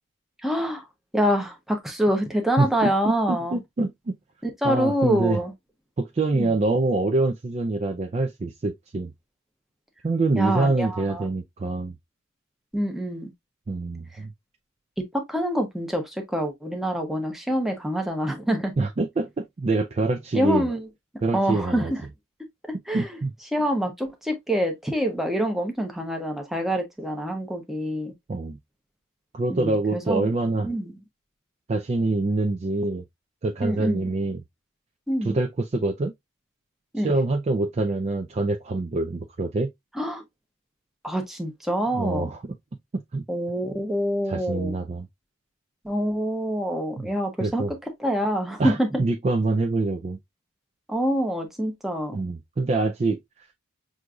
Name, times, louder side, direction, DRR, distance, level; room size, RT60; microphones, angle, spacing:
voice 1, 0.4-0.9 1.1-3.6 4.6-5.5 6.3-6.6 10.3-11.3 12.7-13.3 14.1-14.2 15.0-18.7 20.3-20.9 21.1-22.1 22.9-23.2 23.5-28.1 29.5-30.3 30.6-30.9 33.6-34.1 35.1-35.4 36.9-37.1 39.9-40.2 41.0-42.3 43.3-44.8 45.8-47.6 48.0-49.0 50.9-52.2, equal, ahead, 0.7 m, -26 dB
voice 2, 2.6-4.2 4.6-5.4 6.0-9.1 10.0-11.9 13.7-14.3 18.8-20.7 21.2-21.9 22.9-23.3 28.3-28.6 29.3-30.7 31.7-33.0 33.4-34.4 35.2-36.1 37.0-39.7 41.9-42.4 42.9-43.2 44.3-45.1 47.0-47.1 47.4-47.7 48.6-50.2 52.1-53.5, right 2 dB, 30° right, 0.3 m, -25 dB
6.2 x 2.6 x 2.3 m
head